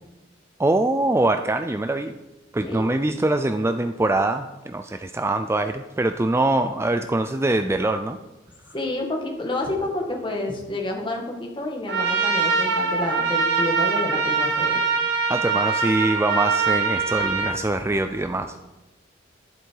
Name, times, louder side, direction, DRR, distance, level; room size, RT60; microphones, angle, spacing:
voice 1, 0.6-2.2 2.5-8.2 15.3-18.6, right 2 dB, 15° right, 8 dB, 0.4 m, -23 dB
voice 2, 8.7-14.8, left 2 dB, 25° left, 0 dB, 2.0 m, -29 dB
Trumpet, 11.9-17.6, right 5 dB, 60° right, 2.2 m, -23 dB
11.5 x 11.0 x 4.7 m, 1.1 s
head